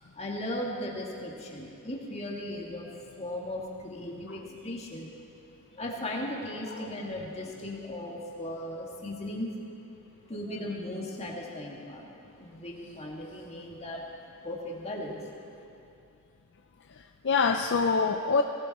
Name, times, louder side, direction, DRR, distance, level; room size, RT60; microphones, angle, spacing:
voice 1, 0.2-2.9 3.2-5.1 5.7-9.5 10.3-14.0 14.4-15.2, left 1 dB, 30° left, -2 dB, 1.9 m, -37 dB
voice 2, 17.0-18.4, left 4 dB, 55° left, 5 dB, 0.5 m, -26 dB
18.0 x 17.5 x 4.2 m, 2.7 s
head